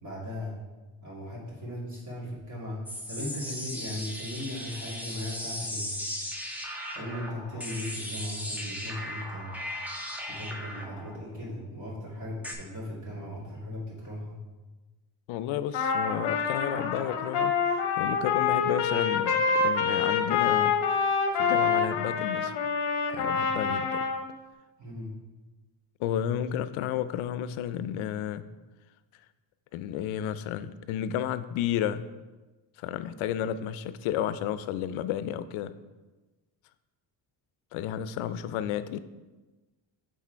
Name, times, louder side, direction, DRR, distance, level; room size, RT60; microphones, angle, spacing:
voice 1, 0.0-0.5 1.0-2.8 3.1-6.0 6.9-9.5 10.3-14.4 24.8-25.1, left 1 dB, 40° right, -6 dB, 2.3 m, -37 dB
sound 1, 2.9-12.6, left 1 dB, 5° right, 0.7 m, -37 dB
voice 2, 15.3-22.5 23.1-24.1 26.0-28.4 29.7-32.1 32.8-35.7 37.7-39.0, left 10 dB, 80° left, 13 dB, 0.5 m, -32 dB
Trumpet, 15.7-24.3, left 5 dB, 60° left, 0.9 m, -26 dB
7.3 x 3.8 x 4.5 m, 1.2 s
cardioid pair, 150°, 48 cm